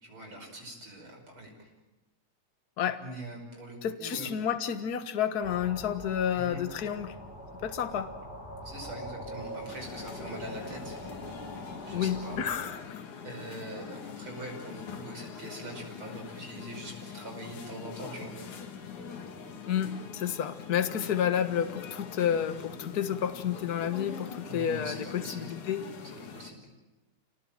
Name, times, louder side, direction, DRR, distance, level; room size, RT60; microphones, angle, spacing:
voice 1, 0.0-1.7 3.0-4.3 6.3-6.6 8.6-11.0 11.8-12.4 13.2-18.3 24.5-25.5 26.0-26.7, right 1 dB, 45° right, 2 dB, 6.3 m, -43 dB
voice 2, 3.8-7.1 7.6-8.1 11.9-13.0 19.7-25.8, left 9 dB, 45° left, 9 dB, 1.4 m, -30 dB
sound 1, 5.4-12.7, equal, 15° left, 4.3 m, -43 dB
sound 2, 9.1-26.5, left 6 dB, 85° left, 3.7 m, -43 dB
29.0 x 18.5 x 9.0 m, 1.1 s
omnidirectional pair, 3.4 m